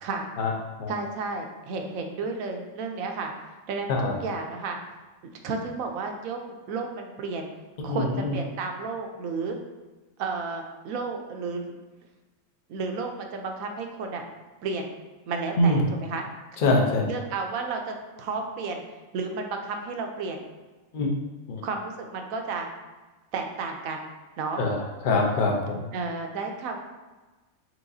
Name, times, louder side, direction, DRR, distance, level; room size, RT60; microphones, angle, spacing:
voice 1, 0.9-3.3 3.7-4.8 5.4-6.4 6.7-7.5 7.8-9.6 10.2-11.7 12.7-14.2 14.6-14.9 15.3-16.3 17.1-18.8 19.1-20.4 21.6-22.7 23.3-24.1 24.4-24.6 25.9-26.8, right 4 dB, 80° right, 3 dB, 1.0 m, -32 dB
voice 2, 7.9-8.3 15.6-15.9 16.6-17.1 20.9-21.1 21.5-21.6 24.6-24.8 25.0-25.9, left 2 dB, 50° left, 0 dB, 0.7 m, -23 dB
4.7 x 3.7 x 2.6 m, 1.2 s
omnidirectional pair, 1.5 m